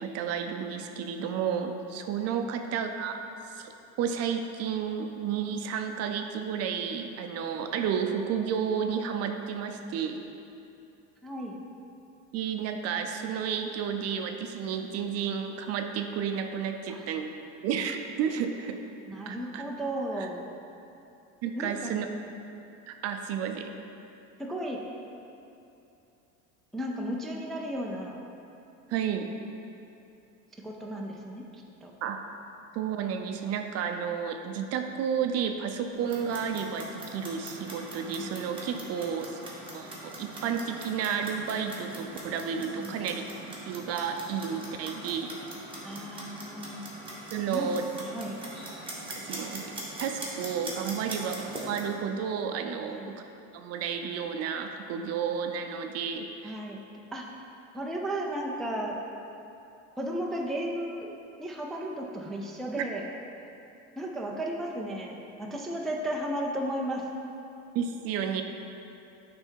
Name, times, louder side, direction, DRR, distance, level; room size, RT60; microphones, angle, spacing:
voice 1, 0.0-3.1 3.5-3.7 4.0-10.2 12.3-18.8 19.3-19.6 20.2-20.3 21.4-22.1 22.9-23.7 28.9-29.3 32.0-32.2 32.7-39.4 39.7-39.9 40.2-43.2 43.7-45.3 47.3-47.8 49.3-49.6 50.0-53.0 53.5-56.6 62.8-62.9 67.7-68.4, right 7 dB, 50° right, 5 dB, 0.5 m, -31 dB
voice 2, 11.2-11.6 16.9-17.0 19.1-20.4 21.6-21.9 24.4-24.8 26.7-28.2 30.6-31.9 38.2-38.4 42.8-43.0 45.8-46.8 47.5-47.7 48.0-48.4 52.9-53.1 56.4-56.8 57.1-57.2 57.7-58.9 60.0-63.0 64.0-67.0, right 1 dB, ahead, -1 dB, 0.4 m, -34 dB
Clock, 35.9-51.9, right 1 dB, 15° right, 1.2 m, -42 dB
8.9 x 3.4 x 4.5 m, 2.7 s
cardioid pair, 140°, 32 cm